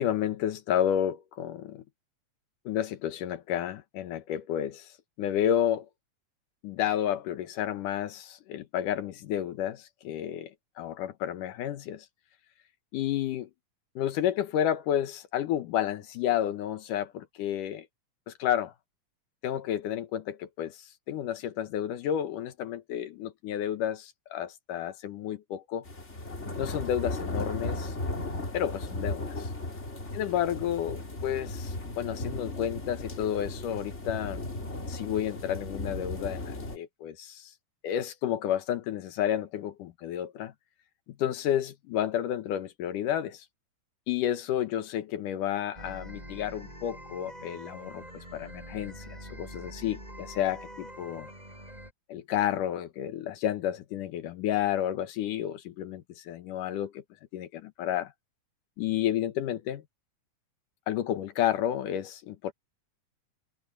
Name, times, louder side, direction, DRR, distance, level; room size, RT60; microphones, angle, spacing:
voice 1, 0.0-1.8 2.7-4.9 5.2-5.9 6.6-10.5 10.8-12.1 12.9-13.5 14.0-17.9 18.3-18.7 19.4-25.9 26.6-27.9 28.5-29.5 30.2-34.4 34.9-37.5 37.8-40.5 41.2-43.4 44.1-48.0 48.3-51.3 52.1-57.0 57.3-58.1 58.8-59.8 60.9-62.5, left 10 dB, 85° left, 2.8 m, -31 dB
sound 1, 25.9-36.8, left 2 dB, 20° left, 2.8 m, -36 dB
sound 2, 45.8-51.9, right 1 dB, 10° right, 8.0 m, -45 dB
omnidirectional pair, 3.6 m